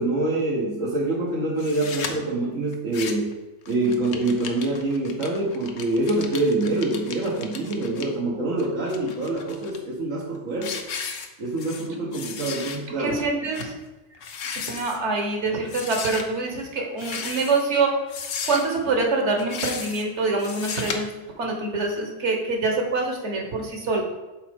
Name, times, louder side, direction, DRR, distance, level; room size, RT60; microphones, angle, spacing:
voice 1, 0.0-3.3 3.7-10.8 11.4-13.2, right 2 dB, 85° right, -4 dB, 1.6 m, -25 dB
sound 1, 1.6-2.1 2.7-3.3 3.6-8.0 8.6-9.8 10.2-10.4 10.6-11.9 12.1-12.8 13.1-13.2 13.5-13.7 14.1-15.0 15.7-16.2 16.9-17.6 18.1-18.8 19.4-20.0 20.4-21.0, left 6 dB, 70° left, 1.0 m, -34 dB
voice 2, 13.0-13.7 14.5-17.9 18.5-21.1 21.4-24.0, right 3 dB, 65° right, 1 dB, 1.6 m, -25 dB
6.7 x 4.1 x 5.2 m, 1.1 s
omnidirectional pair, 1.3 m